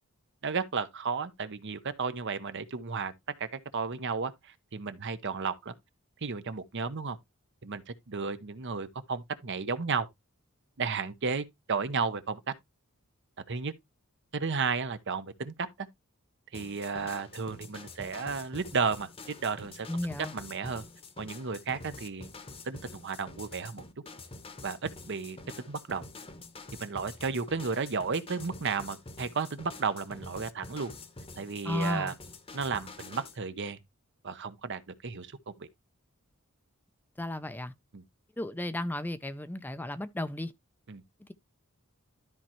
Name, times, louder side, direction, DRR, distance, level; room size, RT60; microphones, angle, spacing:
voice 1, 0.4-3.1 3.4-5.7 6.2-7.2 7.6-10.1 10.8-12.5 13.5-13.7 14.3-15.7 16.5-19.9 20.3-20.8 21.2-22.3 22.6-23.8 24.6-25.4 25.7-26.0 26.8-30.9 31.4-32.1 32.5-33.8 34.2-35.7 37.9-38.0 40.9-41.0, right 5 dB, 55° right, 0.8 m, -33 dB
sound 1, 16.5-33.4, left 3 dB, 25° left, 1.0 m, -47 dB
voice 2, 19.9-20.3 31.6-32.1 37.2-37.7 38.4-40.5 41.2-41.3, left 1 dB, 10° left, 0.5 m, -34 dB
12.5 x 4.4 x 3.0 m
head